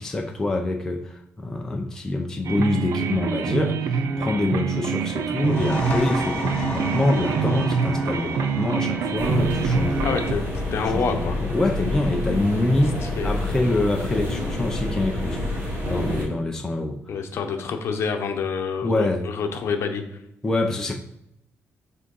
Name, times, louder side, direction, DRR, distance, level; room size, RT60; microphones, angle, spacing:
voice 1, 0.0-10.2 10.8-13.0 13.2-17.0 18.8-19.3 20.4-21.0, left 2 dB, 10° left, 1 dB, 0.6 m, -25 dB
sound 1, 2.4-10.3, right 6 dB, 70° right, 0.6 m, -26 dB
sound 2, 5.3-12.7, left 1 dB, 25° left, 1.8 m, -34 dB
sound 3, 9.2-16.2, left 1 dB, 45° right, 2.4 m, -28 dB
voice 2, 10.0-10.4 10.7-11.4 13.0-13.3 17.1-20.0, left 5 dB, 55° left, 5 dB, 0.9 m, -27 dB
6.2 x 3.7 x 5.5 m, 0.81 s
cardioid pair, 165°, 5 cm